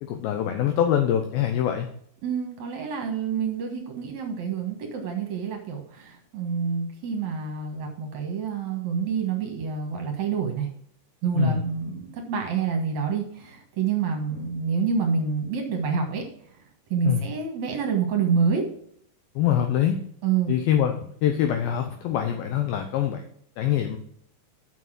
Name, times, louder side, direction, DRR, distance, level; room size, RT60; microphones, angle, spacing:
voice 1, 0.0-1.9 11.4-11.6 17.1-17.2 19.4-20.0 20.5-23.2 23.6-24.0, left 10 dB, 80° left, 5 dB, 2.2 m, -24 dB
voice 2, 2.2-10.7 11.2-16.2 16.9-18.7 20.2-20.5, right 6 dB, 65° right, 3 dB, 1.9 m, -27 dB
7.1 x 6.3 x 6.0 m, 0.65 s
omnidirectional pair, 5.0 m